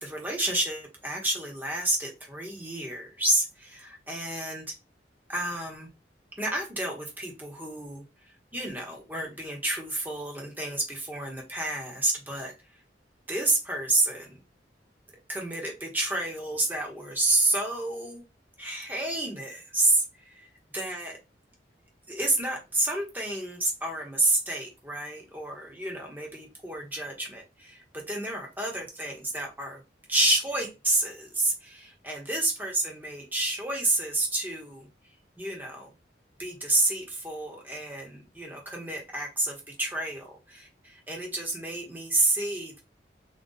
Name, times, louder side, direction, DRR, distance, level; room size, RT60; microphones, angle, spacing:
voice 1, 0.0-4.6 5.3-5.9 6.4-12.5 13.3-14.3 15.3-18.2 18.6-21.2 22.1-29.8 30.1-34.9 35.4-35.9 36.4-42.8, right 2 dB, 10° right, 1.0 m, -29 dB
3.9 x 2.3 x 3.8 m
head